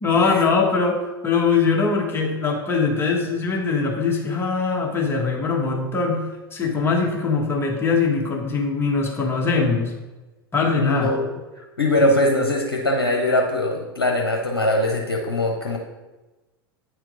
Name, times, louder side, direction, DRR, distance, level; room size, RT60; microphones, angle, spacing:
voice 1, 0.0-9.9 10.5-11.1, left 4 dB, 20° left, 0 dB, 1.4 m, -22 dB
voice 2, 10.8-11.3 11.8-15.8, left 1 dB, 75° left, 1 dB, 0.8 m, -21 dB
9.1 x 4.5 x 3.9 m, 1.1 s
figure-of-eight pair, 85°, 12 cm